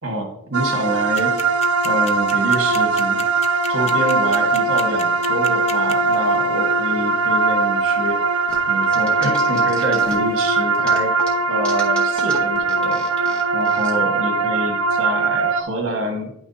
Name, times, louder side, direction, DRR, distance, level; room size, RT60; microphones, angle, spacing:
voice 1, 0.0-1.5 1.8-3.3 3.7-8.4 8.7-11.2 11.5-13.0 13.5-16.3, right 1 dB, 60° right, 1 dB, 1.7 m, -27 dB
sound 1, 0.5-15.6, right 3 dB, 85° right, 0.6 m, -20 dB
sound 2, 1.2-6.2, left 7 dB, 30° left, 0.4 m, -33 dB
sound 3, 8.5-10.4 10.7-13.9, right 1 dB, 5° left, 1.2 m, -36 dB
9.7 x 5.9 x 2.8 m, 0.77 s
head